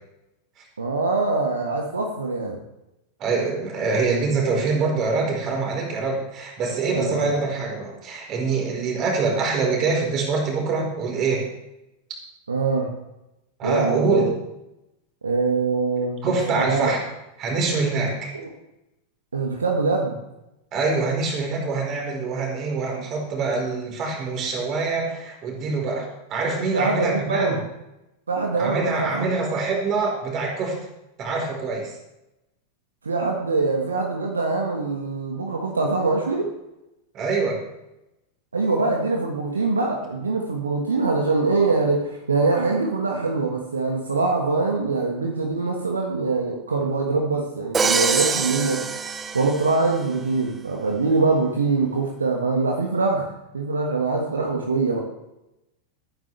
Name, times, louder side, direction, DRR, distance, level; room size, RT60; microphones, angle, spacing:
voice 1, 0.8-2.6 6.9-7.4 12.5-12.9 13.6-14.3 15.2-16.9 19.3-20.2 26.7-27.5 28.3-29.3 33.0-36.5 38.5-48.9 49.3-53.3 53.5-55.0, right 3 dB, 75° right, 1 dB, 1.6 m, -23 dB
voice 2, 3.2-11.5 13.6-14.3 16.2-17.0 17.4-18.3 20.7-27.6 28.6-30.8 31.2-31.9 37.1-37.6, right 4 dB, 35° right, 0 dB, 4.4 m, -25 dB
Crash cymbal, 47.7-50.0, right 5 dB, 20° right, 0.9 m, -24 dB
19.0 x 9.7 x 3.4 m, 0.92 s
figure-of-eight pair, 90°, 0 cm